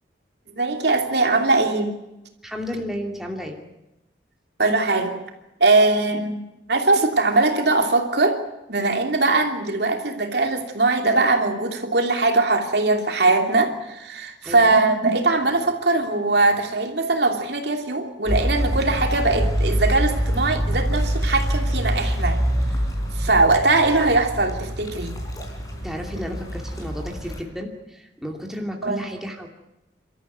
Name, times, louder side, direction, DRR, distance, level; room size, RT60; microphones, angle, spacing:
voice 1, 0.5-1.9 4.6-5.2 5.6-6.4 6.7-8.4 8.7-22.4 23.2-25.1 28.8-29.0, right 3 dB, 65° right, 3 dB, 2.9 m, -21 dB
voice 2, 2.4-3.6 14.4-14.8 25.8-29.5, equal, ahead, 1 dB, 2.7 m, -32 dB
sound 1, 18.3-27.4, equal, 20° left, 4.0 m, -25 dB
29.5 x 13.5 x 9.4 m, 0.93 s
head